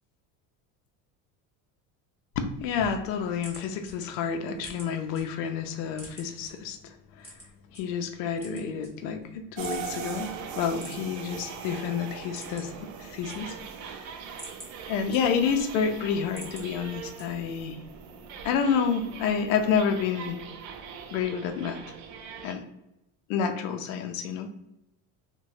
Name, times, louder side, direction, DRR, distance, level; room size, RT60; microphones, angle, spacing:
voice 1, 2.4-7.3 7.7-13.6 13.9-14.1 14.9-17.8 18.4-20.4 21.1-21.9 22.4-22.6 23.3-24.5, left 6 dB, 85° left, 6 dB, 0.6 m, -29 dB
sound 1, 3.3-5.2 5.6-6.5 7.2-7.8 8.3-9.2 9.6-9.8 10.1-10.2 10.7-11.4 11.8-11.9 12.2-12.8 13.1-13.8 14.2-15.6 16.0-16.7 17.2-17.6, equal, 5° right, 1.0 m, -46 dB
sound 2, 9.6-22.5, right 7 dB, 80° right, 0.6 m, -41 dB
3.0 x 2.2 x 2.6 m, 0.87 s
cardioid pair, 150°, 38 cm